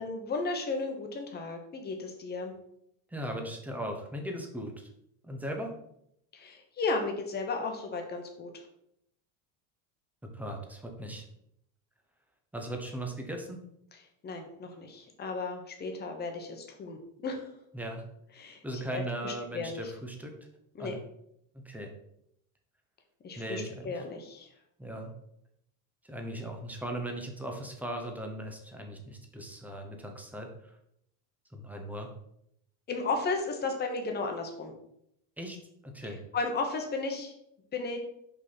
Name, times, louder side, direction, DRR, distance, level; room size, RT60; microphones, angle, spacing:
voice 1, 0.0-2.5 6.3-8.6 14.2-17.5 18.4-19.9 20.7-20.9 23.2-24.5 32.9-34.7 36.0-37.3 37.7-38.0, left 3 dB, 25° left, 3 dB, 1.2 m, -34 dB
voice 2, 3.1-4.9 5.2-5.7 10.3-11.2 12.5-13.6 17.7-18.0 18.6-20.3 20.8-21.0 21.5-21.9 23.4-23.9 24.8-25.1 26.1-30.7 31.5-32.1 35.4-35.6 35.8-36.2, right 1 dB, 5° right, 3 dB, 0.8 m, -38 dB
5.5 x 5.3 x 4.2 m, 0.75 s
cardioid pair, 155°, 40 cm